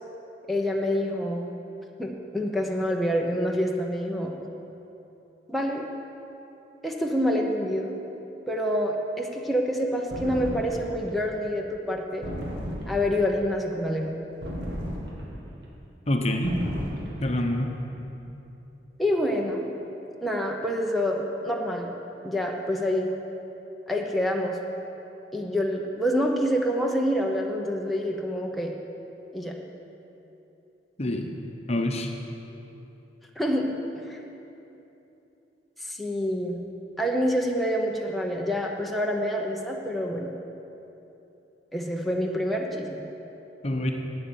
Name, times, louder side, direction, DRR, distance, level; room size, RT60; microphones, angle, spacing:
voice 1, 0.5-1.5 2.0-4.3 5.5-5.9 6.8-8.0 8.5-12.3 12.9-14.2 19.0-19.7 20.2-21.9 22.2-23.1 23.9-24.6 25.3-28.7 29.3-29.6 33.4-33.7 34.1-34.2 35.8-36.6 37.0-40.3 41.7-43.1, equal, ahead, -1 dB, 0.8 m, -27 dB
sound 1, 10.1-11.0 12.2-13.2 14.4-15.4 16.4-17.3, equal, 65° right, 2.2 m, -34 dB
voice 2, 16.1-16.6 17.2-17.8 31.0-31.3 31.7-32.1 43.6-43.9, left 1 dB, 35° left, 3 dB, 0.9 m, -26 dB
12.0 x 8.9 x 7.2 m, 3.0 s
head